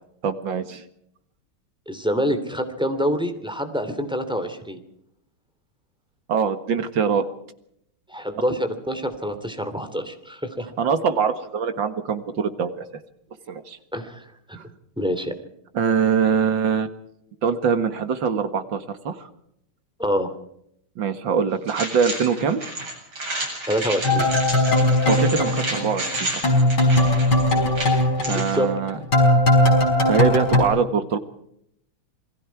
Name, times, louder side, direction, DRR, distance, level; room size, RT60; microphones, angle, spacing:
voice 1, 0.2-0.8 6.3-7.2 10.8-12.8 13.5-13.8 14.6-14.7 15.7-16.9 17.4-19.3 21.0-22.6 25.1-26.4 28.3-29.0 30.0-31.2, right 6 dB, 65° right, 9 dB, 2.4 m, -23 dB
voice 2, 1.9-4.8 8.1-10.7 13.9-14.3 15.0-15.3 20.0-20.3 23.7-24.3 28.3-28.7, equal, ahead, 7 dB, 2.8 m, -26 dB
sound 1, 21.7-28.6, right 2 dB, 85° right, 8.7 m, -31 dB
sound 2, 24.0-26.2 26.4-30.6, left 1 dB, 75° left, 6.1 m, -19 dB
28.0 x 21.5 x 4.7 m, 0.74 s
omnidirectional pair, 2.2 m